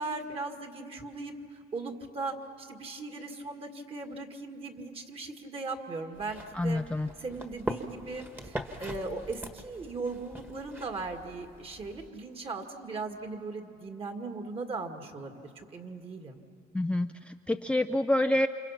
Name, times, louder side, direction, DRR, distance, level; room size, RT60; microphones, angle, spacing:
voice 1, 0.0-6.8 7.2-16.4, right 3 dB, 35° right, 5 dB, 2.2 m, -38 dB
sound 1, 6.1-12.1, right 1 dB, 10° right, 1.6 m, -41 dB
voice 2, 6.5-7.1 16.7-18.5, left 1 dB, 5° left, 6 dB, 0.5 m, -27 dB
29.0 x 27.5 x 5.8 m, 2.7 s
cardioid pair, 110°, 17 cm